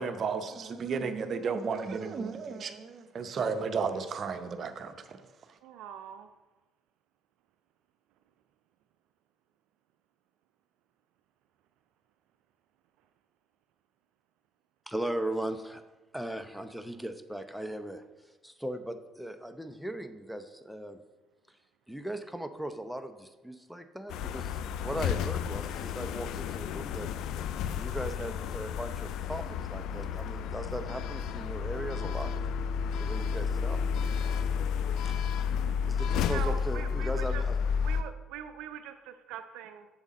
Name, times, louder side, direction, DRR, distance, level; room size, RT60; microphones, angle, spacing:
voice 1, 0.0-5.2, right 5 dB, 45° right, 9 dB, 0.7 m, -33 dB
voice 2, 5.6-6.3 36.2-37.4 37.8-39.9, right 9 dB, 65° right, 9 dB, 0.3 m, -42 dB
voice 3, 14.9-15.8 16.1-18.0 18.4-21.0 21.9-27.1 27.8-32.3 33.0-33.8 35.0-35.2 35.9-37.5, right 1 dB, ahead, 9 dB, 0.7 m, -38 dB
sound 1, 24.1-38.0, left 7 dB, 65° left, 0.4 m, -31 dB
7.1 x 6.4 x 4.2 m, 1.2 s
hypercardioid pair, 55°, 0 cm